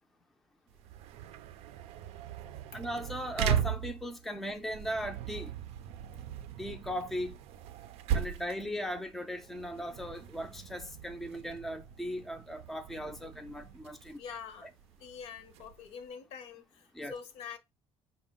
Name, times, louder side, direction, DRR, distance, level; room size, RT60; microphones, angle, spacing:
sound 1, 0.7-16.1, right 9 dB, 85° right, 0.4 m, -38 dB
voice 1, 2.7-5.5 6.6-7.4 8.1-14.2 14.6-14.7 16.9-17.1, equal, ahead, 0.4 m, -38 dB
voice 2, 14.2-14.7 15.0-17.6, left 7 dB, 70° left, 0.8 m, -45 dB
5.2 x 2.1 x 3.7 m
cardioid pair, 145°, 11 cm